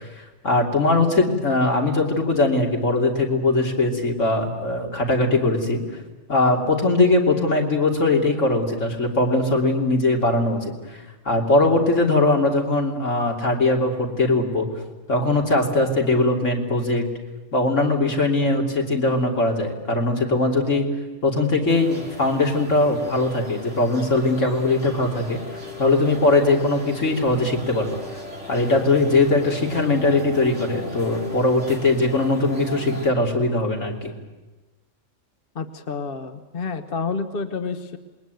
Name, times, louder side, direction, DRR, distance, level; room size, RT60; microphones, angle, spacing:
voice 1, 0.4-5.8 6.3-10.7 11.2-14.7 15.1-17.0 17.5-20.9 21.2-25.4 25.8-28.0 28.5-34.1, left 2 dB, 70° left, 1 dB, 3.5 m, -20 dB
sound 1, 21.7-33.1, left 2 dB, 65° right, 4.6 m, -37 dB
voice 2, 35.5-38.0, left 4 dB, 45° left, 8 dB, 1.2 m, -29 dB
27.0 x 21.0 x 9.3 m, 1.2 s
omnidirectional pair, 1.3 m